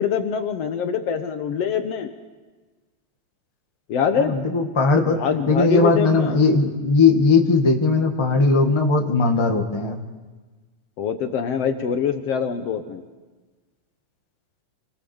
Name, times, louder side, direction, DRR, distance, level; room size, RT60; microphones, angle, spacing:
voice 1, 0.0-2.1 3.9-4.4 5.0-6.4 11.0-13.0, left 7 dB, 65° left, 7 dB, 1.9 m, -24 dB
voice 2, 4.1-5.2 5.5-10.0, left 3 dB, 15° left, 2 dB, 1.2 m, -18 dB
28.0 x 19.5 x 7.1 m, 1.3 s
omnidirectional pair, 3.4 m